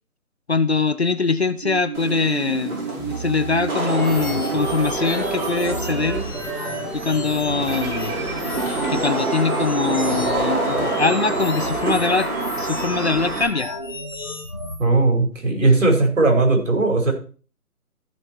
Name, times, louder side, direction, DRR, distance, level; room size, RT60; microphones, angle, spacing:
voice 1, 0.5-6.3 6.6-8.1 8.9-12.3 12.6-13.7, left 4 dB, 45° left, 14 dB, 0.6 m, -23 dB
sound 1, 1.6-10.1, right 6 dB, 40° right, 3.5 m, -32 dB
Wind / Rain, 1.9-13.4, right 3 dB, 75° right, 5.9 m, -27 dB
sound 2, 3.9-14.8, left 1 dB, 15° left, 0.9 m, -33 dB
voice 2, 14.8-17.1, right 3 dB, 55° right, 3 dB, 4.7 m, -18 dB
15.0 x 5.8 x 4.5 m, 0.40 s
hypercardioid pair, 175°, 45 cm